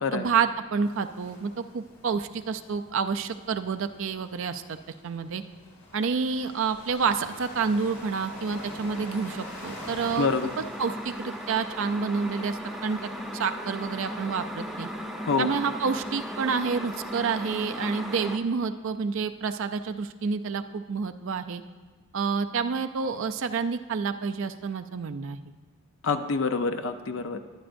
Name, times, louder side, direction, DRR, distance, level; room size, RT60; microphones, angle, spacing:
voice 1, 0.1-4.8 5.0-5.4 5.9-10.3 10.8-14.9 15.4-21.6 22.1-25.4, right 5 dB, 60° right, 8 dB, 0.4 m, -29 dB
sound 1, 0.8-17.1, left 2 dB, 75° left, 2.9 m, -48 dB
sound 2, 7.2-18.4, equal, ahead, 0.7 m, -37 dB
voice 2, 10.2-10.5 15.3-15.5 26.0-27.4, left 4 dB, 60° left, 8 dB, 0.6 m, -26 dB
22.0 x 8.9 x 2.6 m, 1.4 s
head